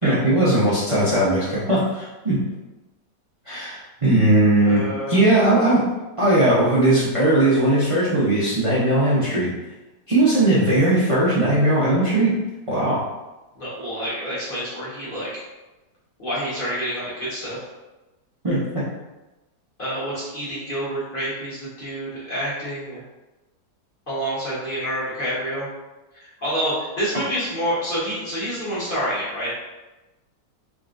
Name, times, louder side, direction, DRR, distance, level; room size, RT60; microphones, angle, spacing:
voice 1, 0.0-2.5 3.5-4.8 5.1-5.8 6.2-9.5 10.1-12.4 12.7-13.0 18.4-18.8, right 1 dB, 55° right, -10 dB, 0.3 m, -19 dB
voice 2, 4.6-5.2 13.5-15.4 16.2-17.6 19.8-23.0 24.1-25.7 26.1-29.5, equal, 35° left, -9 dB, 1.2 m, -28 dB
3.6 x 3.4 x 2.5 m, 1.1 s
omnidirectional pair, 1.9 m